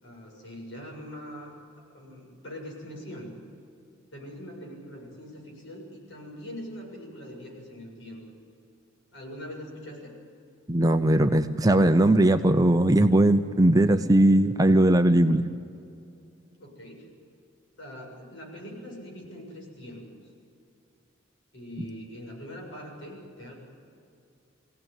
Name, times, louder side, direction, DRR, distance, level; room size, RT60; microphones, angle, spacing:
voice 1, 0.0-1.5 1.9-3.4 4.1-8.2 9.1-10.2 16.6-17.1 17.8-20.0 21.5-23.5, equal, 65° left, -1 dB, 7.2 m, -42 dB
voice 2, 10.7-15.5, right 1 dB, 20° right, 7 dB, 0.7 m, -19 dB
23.0 x 17.0 x 9.1 m, 2.5 s
head